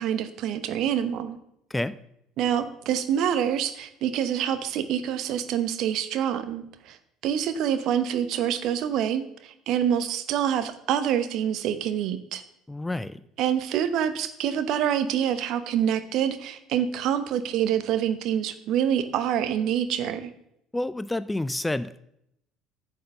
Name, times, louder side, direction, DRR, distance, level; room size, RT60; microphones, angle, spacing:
voice 1, 0.0-1.4 2.4-7.0 7.2-12.4 13.4-20.3, right 9 dB, 55° right, 11 dB, 0.9 m, -26 dB
voice 2, 12.7-13.2 20.7-22.0, left 1 dB, 10° left, 15 dB, 0.4 m, -29 dB
9.4 x 6.6 x 6.7 m, 0.77 s
figure-of-eight pair, 60°, 0 cm